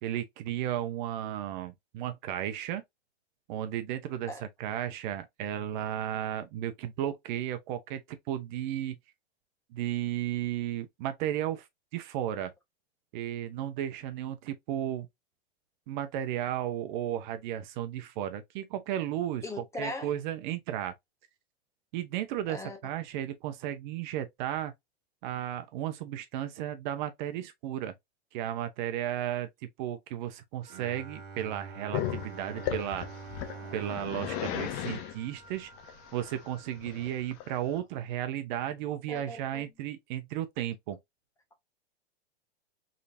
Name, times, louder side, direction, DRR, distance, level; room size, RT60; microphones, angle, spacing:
voice 1, 0.0-2.8 3.5-8.0 8.3-9.0 9.7-11.7 11.9-12.5 13.1-15.1 15.9-19.4 19.8-20.9 21.9-24.7 25.2-27.9 28.3-33.1 33.7-35.7 36.1-41.0, right 11 dB, 45° right, 0.7 m, -34 dB
voice 2, 19.4-20.1 22.5-22.8 39.1-39.6, left 1 dB, 10° left, 0.9 m, -38 dB
Wind instrument woodwind instrument, 30.6-36.8, right 2 dB, 15° right, 2.2 m, -56 dB
Bowed string instrument, 30.7-36.0, right 4 dB, 65° right, 1.3 m, -45 dB
Growling, 31.9-37.8, left 11 dB, 45° left, 1.0 m, -36 dB
3.8 x 3.3 x 2.6 m
hypercardioid pair, 130°, 32 cm